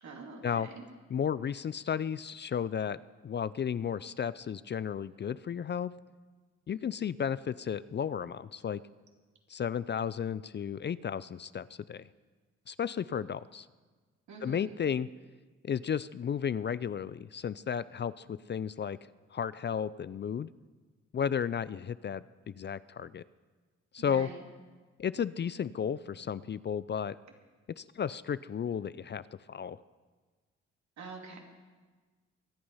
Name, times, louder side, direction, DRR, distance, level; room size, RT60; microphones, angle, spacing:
voice 1, 0.0-0.8 14.3-14.8 24.0-24.4 31.0-31.4, right 4 dB, 70° right, 1 dB, 2.8 m, -45 dB
voice 2, 1.1-3.0 3.2-5.9 6.7-8.8 9.5-12.1 12.7-13.7 14.4-15.1 15.6-19.0 19.3-20.5 21.1-23.2 23.9-24.3 25.0-27.1 27.8-29.2 29.5-29.8, left 8 dB, 40° left, 17 dB, 0.4 m, -33 dB
23.0 x 8.6 x 5.6 m, 1.4 s
cardioid pair, 65°, 29 cm